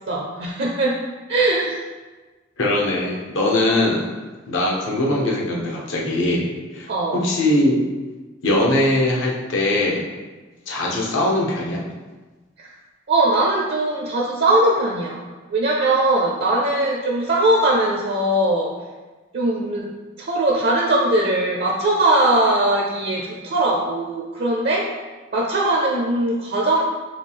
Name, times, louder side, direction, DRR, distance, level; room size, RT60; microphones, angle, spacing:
voice 1, 0.1-1.0 1.3-1.8 6.9-7.2 12.6-12.7 13.1-15.2 15.5-18.7 19.3-19.9 20.2-24.9 25.3-26.8, right 1 dB, 55° right, -2 dB, 0.5 m, -20 dB
voice 2, 2.6-4.0 4.5-7.8 8.4-10.0 10.7-11.8, left 1 dB, 75° left, -3 dB, 0.9 m, -21 dB
5.1 x 2.3 x 3.5 m, 1.3 s
head